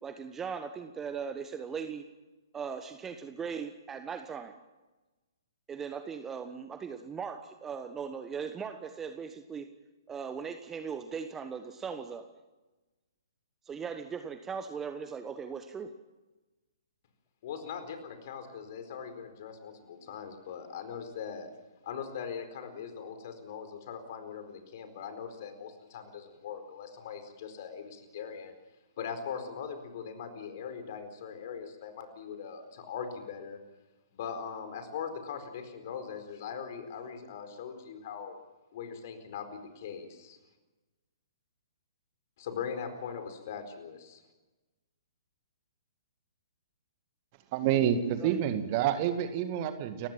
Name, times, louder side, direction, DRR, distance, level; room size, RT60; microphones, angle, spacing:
voice 1, 0.0-2.0 2.5-4.5 5.7-9.7 10.1-12.3 13.6-15.9 48.2-48.6, right 6 dB, 15° right, 8 dB, 1.1 m, -39 dB
voice 2, 17.4-21.5 21.8-28.5 29.0-33.6 34.1-38.4 38.7-40.4 42.4-44.2, left 7 dB, 45° left, 8 dB, 4.5 m, -40 dB
voice 3, 47.5-50.1, right 10 dB, 35° right, 9 dB, 1.9 m, -28 dB
29.5 x 16.0 x 7.5 m, 1.2 s
figure-of-eight pair, 120°, 2 cm